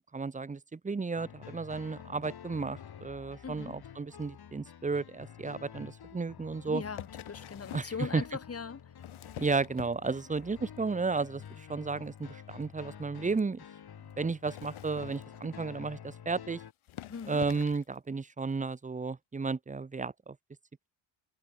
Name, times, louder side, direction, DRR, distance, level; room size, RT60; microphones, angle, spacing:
voice 1, 0.0-6.8 7.7-8.2 9.4-13.6 14.2-16.6 17.3-20.4, right 4 dB, 15° right, 0.8 m, -33 dB
sound 1, 1.2-16.7, left 8 dB, 50° left, 6.1 m, -49 dB
voice 2, 3.4-3.8 6.7-9.0 17.1-17.4, left 5 dB, 30° left, 2.8 m, -40 dB
sound 2, 6.9-8.0 8.8-10.4 10.8-11.2 11.5-11.6 11.9-12.0 12.2-12.3 12.6-12.7 13.3-13.4 14.3-15.7 16.4-16.5 16.8-17.9 18.7-18.8, left 13 dB, 75° left, 5.5 m, -47 dB
cardioid pair, 115°, 48 cm